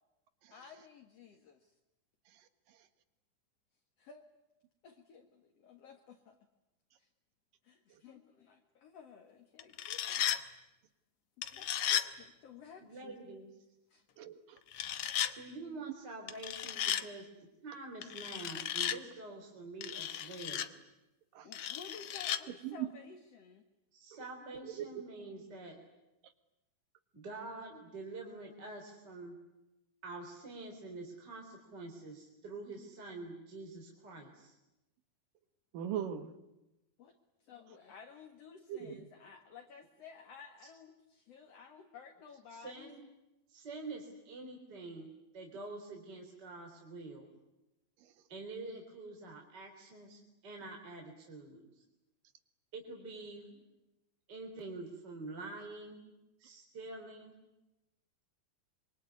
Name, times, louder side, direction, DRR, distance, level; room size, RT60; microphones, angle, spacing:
voice 1, 0.5-1.7 4.0-4.2 4.8-6.4 7.0-7.1 7.6-10.3 11.4-13.2 13.9-14.1 21.4-23.6 37.0-37.2 37.4-42.9, left 6 dB, 50° left, 4 dB, 2.4 m, -54 dB
sound 1, 9.6-10.4 11.4-12.1 14.7-15.3 16.3-17.0 18.0-19.0 19.8-20.7 21.5-22.4, left 10 dB, 70° left, 1.4 m, -35 dB
voice 2, 12.8-13.5 15.4-17.3 17.6-20.7 23.9-25.8 27.1-29.4 30.0-34.5 42.5-43.0 43.5-45.1 45.3-47.3 48.3-51.6 52.7-53.6 54.3-56.0 56.4-57.3, right 3 dB, 30° right, 1 dB, 4.1 m, -46 dB
voice 3, 14.2-14.6 21.3-21.5 22.6-22.9 24.6-24.8 35.7-36.3 38.7-39.0, right 10 dB, 70° right, 10 dB, 3.2 m, -39 dB
26.0 x 24.0 x 9.6 m, 0.96 s
omnidirectional pair, 4.2 m